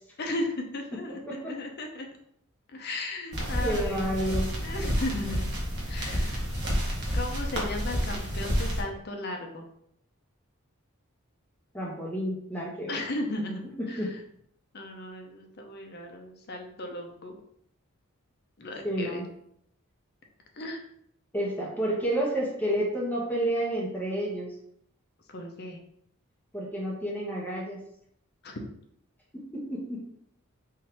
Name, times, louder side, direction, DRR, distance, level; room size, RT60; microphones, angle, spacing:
voice 1, 0.2-2.1 2.7-4.1 4.6-5.5 5.9-6.4 7.1-9.7 12.9-13.6 13.9-14.2 14.7-17.4 18.6-19.2 20.6-20.8 25.3-25.8 28.4-28.6, left 2 dB, 50° left, 3 dB, 0.7 m, -36 dB
voice 2, 1.1-1.6 3.6-4.5 11.7-13.0 13.8-14.2 18.8-19.2 21.3-24.5 26.5-27.8 29.3-30.0, right 1 dB, 10° left, -3 dB, 1.0 m, -30 dB
sound 1, 3.3-8.8, equal, 55° right, 1.1 m, -29 dB
3.7 x 2.7 x 4.4 m, 0.72 s
head